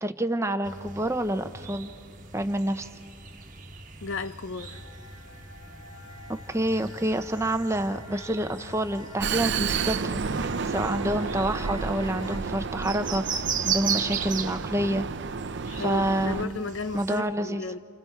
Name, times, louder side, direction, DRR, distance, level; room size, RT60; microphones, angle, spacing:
voice 1, 0.0-1.9 2.3-2.9 6.3-15.1 15.8-16.6 16.9-17.6, right 1 dB, 15° right, 0.7 m, -28 dB
sound 1, 0.6-17.2, right 7 dB, 40° right, 1.3 m, -38 dB
voice 2, 4.0-4.8 15.7-17.8, left 4 dB, 70° left, 0.7 m, -34 dB
sound 2, 4.6-12.4, left 1 dB, 85° left, 3.3 m, -44 dB
Vehicle, 9.2-16.5, right 5 dB, 55° right, 0.5 m, -31 dB
29.5 x 29.5 x 4.6 m
head